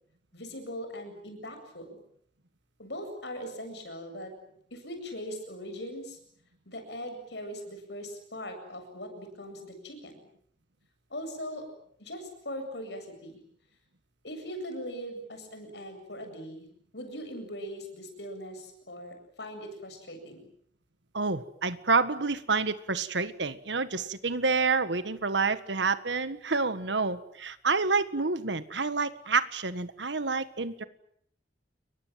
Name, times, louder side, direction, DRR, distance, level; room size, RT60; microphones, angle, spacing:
voice 1, 0.3-2.0 2.8-4.3 4.7-6.2 6.7-10.2 11.1-11.7 12.0-13.4 14.2-16.7 16.9-20.5, equal, 70° left, 6 dB, 7.9 m, -40 dB
voice 2, 21.1-30.8, right 4 dB, 75° right, 12 dB, 1.7 m, -28 dB
30.0 x 22.5 x 7.7 m, 0.65 s
head